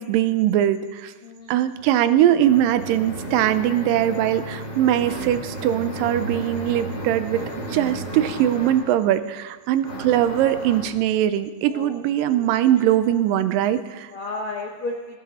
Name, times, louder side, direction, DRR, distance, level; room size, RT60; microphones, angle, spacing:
voice 1, 0.0-1.1 1.5-7.4 7.7-14.1, right 11 dB, 85° right, 12 dB, 2.3 m, -21 dB
voice 2, 1.2-1.5 4.2-4.3 10.4-10.5 11.7-11.9 12.3-12.5 12.8-12.9 14.1-15.2, left 2 dB, 65° left, 0 dB, 1.3 m, -33 dB
sound 1, 1.7-8.9 9.8-10.9, right 1 dB, 30° left, 5.1 m, -33 dB
15.0 x 11.5 x 4.1 m, 1.3 s
omnidirectional pair, 3.9 m